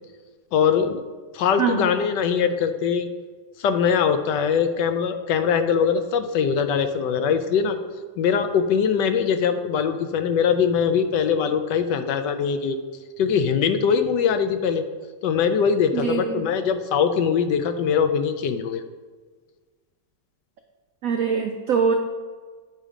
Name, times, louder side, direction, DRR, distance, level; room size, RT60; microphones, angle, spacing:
voice 1, 0.5-1.0 1.3-3.1 3.6-7.8 8.2-12.8 13.2-14.8 15.2-18.8, left 7 dB, 75° left, 8 dB, 1.1 m, -22 dB
voice 2, 1.6-1.9 15.9-16.4 21.0-21.9, right 6 dB, 80° right, 4 dB, 0.7 m, -23 dB
9.1 x 4.1 x 5.0 m, 1.5 s
omnidirectional pair, 2.1 m